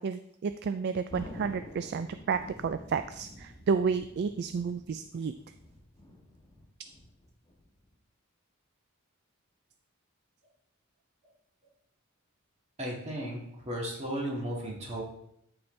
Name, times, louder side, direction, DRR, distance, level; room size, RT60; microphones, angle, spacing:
voice 1, 0.0-5.3, right 5 dB, 50° right, 10 dB, 0.3 m, -31 dB
Thunder, 1.1-7.9, left 1 dB, 15° left, 1.7 m, -48 dB
voice 2, 12.8-13.4 13.7-15.0, right 1 dB, 30° right, -2 dB, 1.9 m, -34 dB
13.0 x 4.3 x 3.2 m, 0.75 s
head